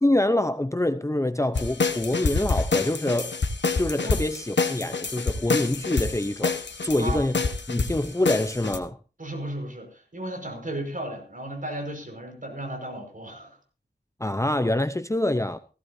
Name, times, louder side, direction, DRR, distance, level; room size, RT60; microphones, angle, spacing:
voice 1, 0.0-3.4 3.8-7.4 7.7-9.0 14.2-15.6, left 1 dB, 15° left, 0.7 m, -25 dB
sound 1, 1.5-8.8, left 4 dB, 90° left, 1.3 m, -27 dB
voice 2, 9.2-13.6, right 1 dB, 50° right, 5.3 m, -35 dB
17.5 x 15.5 x 2.7 m
wide cardioid pair, 70°, 18 cm